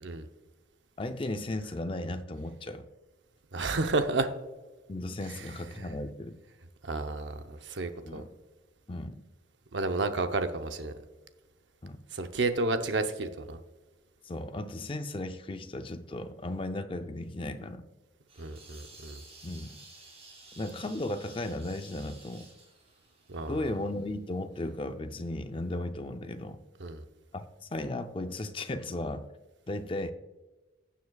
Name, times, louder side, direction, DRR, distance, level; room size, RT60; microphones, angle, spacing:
voice 1, 1.0-2.8 4.9-6.4 8.0-8.3 8.9-9.2 11.8-12.0 14.2-17.8 19.4-19.7 20.6-22.5 23.5-26.6 27.3-29.3 29.7-30.1, left 1 dB, 25° left, 0.5 m, -35 dB
voice 2, 3.5-4.3 5.8-5.9 6.8-8.2 9.7-10.9 12.1-13.6 18.4-19.2 23.3-23.6 26.8-27.0, right 3 dB, 65° right, 0.7 m, -31 dB
sound 1, 18.3-24.1, right 2 dB, 30° right, 3.1 m, -53 dB
15.5 x 7.3 x 2.3 m
head